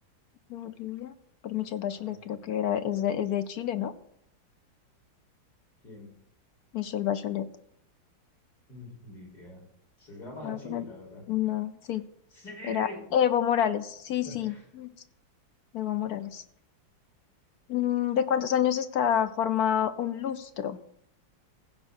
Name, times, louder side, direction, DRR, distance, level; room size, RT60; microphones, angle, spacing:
voice 1, 0.5-1.1 1.4-3.9 6.7-7.5 10.4-10.8 11.3-12.0 12.6-14.9 15.7-16.4 17.7-20.8, left 9 dB, 65° left, 12 dB, 1.0 m, -28 dB
voice 2, 1.8-2.5 5.8-6.1 8.7-9.6 10.0-11.2 12.3-13.0 14.2-14.6, left 1 dB, 50° left, -2 dB, 5.2 m, -44 dB
15.5 x 5.3 x 8.1 m, 0.73 s
omnidirectional pair, 2.1 m